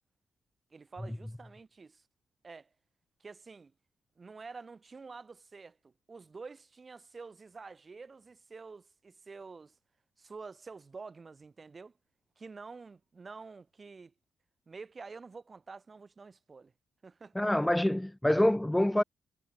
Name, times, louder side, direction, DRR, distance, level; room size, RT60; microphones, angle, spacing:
voice 1, 0.7-2.0 2.4-2.7 3.2-3.7 4.2-9.7 10.2-11.9 12.4-14.1 14.7-16.7 17.0-17.7, right 4 dB, 30° right, 5.8 m, -48 dB
voice 2, 17.4-19.0, left 1 dB, 5° left, 0.3 m, -26 dB
cardioid pair, 90°, 0 cm